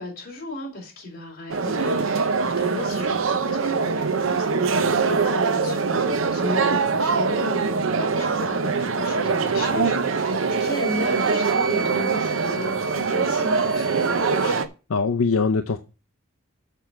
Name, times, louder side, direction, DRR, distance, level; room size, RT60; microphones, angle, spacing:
voice 1, 0.0-14.6, left 1 dB, 45° left, 3.8 m, -34 dB
sound 1, 1.5-14.7, right 4 dB, 65° right, 0.7 m, -23 dB
Wind instrument woodwind instrument, 10.4-14.6, right 6 dB, 50° right, 3.1 m, -36 dB
voice 2, 14.9-15.8, left 4 dB, 80° left, 0.6 m, -22 dB
6.8 x 6.1 x 5.7 m
head